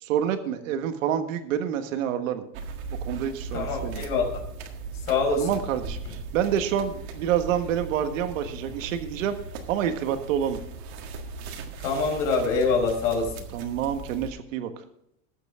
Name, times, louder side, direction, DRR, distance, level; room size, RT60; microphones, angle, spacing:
voice 1, 0.0-2.4 3.0-4.0 5.4-9.4 9.7-10.6 13.5-14.7, right 9 dB, 75° right, 8 dB, 1.5 m, -27 dB
sound 1, 2.5-14.3, right 4 dB, 50° right, 1.8 m, -38 dB
voice 2, 3.5-4.4 5.1-5.6 11.8-13.3, left 4 dB, 60° left, 1 dB, 5.2 m, -25 dB
19.5 x 8.1 x 3.7 m, 0.75 s
supercardioid pair, 170°, 40 cm